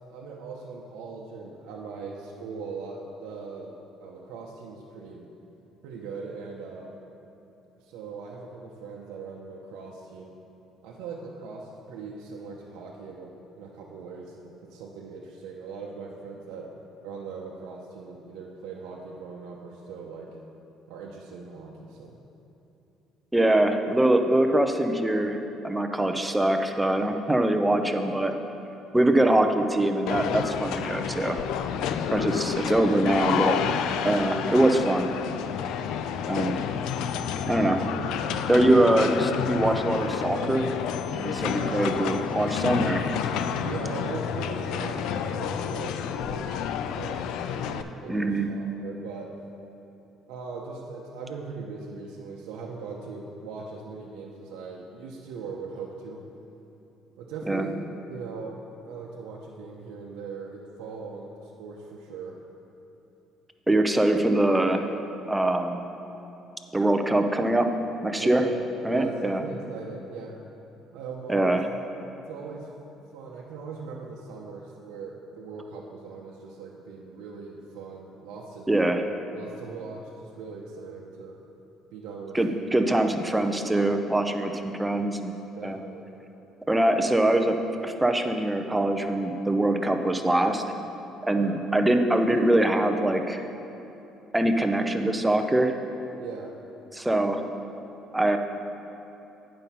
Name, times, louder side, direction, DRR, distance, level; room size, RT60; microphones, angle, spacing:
voice 1, 0.1-3.7 4.0-5.3 5.8-6.9 7.8-10.3 10.8-16.7 17.0-20.3 20.9-22.1 29.0-29.4 41.5-41.9 43.6-49.3 50.3-56.2 57.2-57.7 58.1-58.5 58.8-62.3 68.2-68.6 68.9-70.4 70.9-71.6 72.1-72.7 73.1-79.0 79.3-81.4 81.9-82.7 84.5-84.7 85.6-86.0 91.3-91.6 96.2-96.5, right 4 dB, 90° right, -3 dB, 0.7 m, -40 dB
voice 2, 23.3-28.3 28.9-31.4 32.1-33.6 34.0-35.1 36.3-36.6 37.5-37.8 38.5-40.7 41.1-43.1 48.1-48.5 57.5-57.7 63.7-64.9 65.3-65.8 66.7-67.7 68.0-68.4 68.8-69.4 71.3-71.6 78.7-79.0 82.3-84.5 84.8-85.3 85.6-85.8 86.7-87.6 87.8-90.6 91.3-93.4 94.3-95.7 96.9-97.4 98.1-98.4, right 1 dB, 10° right, 5 dB, 0.6 m, -23 dB
sound 1, 30.1-47.8, left 8 dB, 75° left, 0.4 m, -29 dB
9.0 x 5.3 x 5.7 m, 2.9 s
cardioid pair, 115°, 0 cm